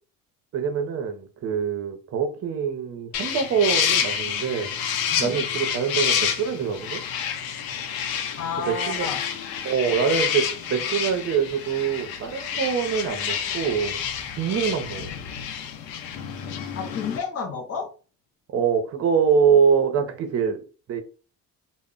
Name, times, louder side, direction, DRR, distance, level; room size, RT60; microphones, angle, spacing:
voice 1, 0.5-4.7 5.2-7.0 8.7-9.1 9.6-14.0 14.4-15.1 18.5-21.0, right 6 dB, 45° right, 0.6 m, -24 dB
sound 1, 3.1-17.2, left 8 dB, 85° left, 0.6 m, -28 dB
voice 2, 8.4-9.2 16.7-17.9, left 5 dB, 45° left, 0.6 m, -31 dB
2.0 x 2.0 x 3.6 m
cardioid pair, 130°, 35 cm